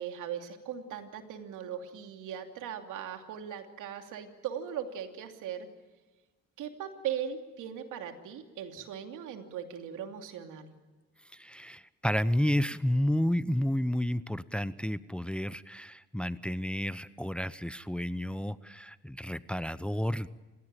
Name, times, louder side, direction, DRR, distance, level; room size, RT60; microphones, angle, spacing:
voice 1, 0.0-5.7 6.6-10.7, right 9 dB, 90° right, 5 dB, 2.9 m, -39 dB
voice 2, 11.3-20.3, equal, 5° left, 15 dB, 0.8 m, -31 dB
29.0 x 16.5 x 9.0 m, 1.2 s
cardioid pair, 90°, 30 cm